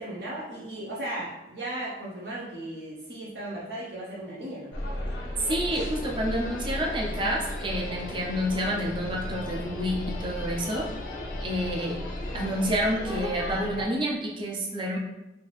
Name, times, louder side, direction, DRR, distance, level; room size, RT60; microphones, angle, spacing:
voice 1, 0.0-4.7, right 1 dB, 65° right, -6 dB, 0.7 m, -36 dB
sound 1, 4.7-13.9, left 1 dB, 80° left, 0.7 m, -35 dB
sound 2, 5.4-13.7, left 3 dB, 45° left, 0.4 m, -44 dB
voice 2, 5.4-10.9 11.4-12.0 12.3-15.0, equal, 25° right, -1 dB, 0.5 m, -29 dB
3.3 x 2.6 x 3.2 m, 0.98 s
head